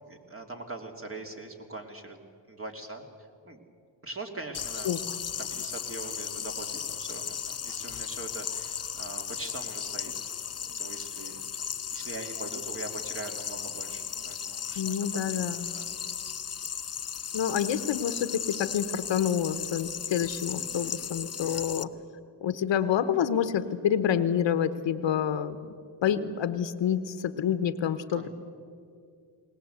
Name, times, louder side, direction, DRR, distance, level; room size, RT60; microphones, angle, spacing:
voice 1, 0.1-2.2 2.5-3.1 3.4-3.6 4.0-4.9 5.4-10.1 10.8-11.4 11.9-15.2 15.7-16.0 21.4-21.7 28.1-28.3, right 2 dB, 30° right, 3 dB, 2.8 m, -42 dB
sound 1, 4.5-21.8, left 7 dB, 35° left, 0.7 m, -36 dB
voice 2, 14.8-15.7 17.3-21.9 22.4-25.7 26.0-28.3, left 8 dB, 85° left, 12 dB, 1.1 m, -28 dB
21.0 x 19.0 x 8.1 m, 2.3 s
cardioid pair, 85°, 44 cm